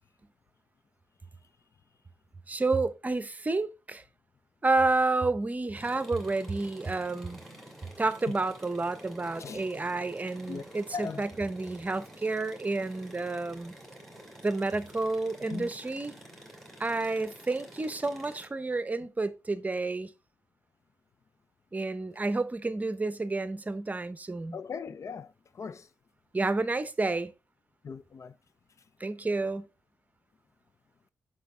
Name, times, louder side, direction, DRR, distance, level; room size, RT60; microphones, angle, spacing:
voice 1, 2.5-4.0 4.6-7.4 8.0-13.7 14.4-16.2 16.8-20.1 21.7-24.6 26.3-27.3 29.0-29.7, right 3 dB, 25° right, 0.8 m, -30 dB
sound 1, 5.7-18.5, right 1 dB, 5° left, 2.8 m, -49 dB
voice 2, 10.9-11.2 15.5-15.7 24.5-25.3 25.6-25.9 27.8-28.3, left 5 dB, 55° left, 0.4 m, -38 dB
8.0 x 6.1 x 3.3 m
cardioid pair, 85°, 6 cm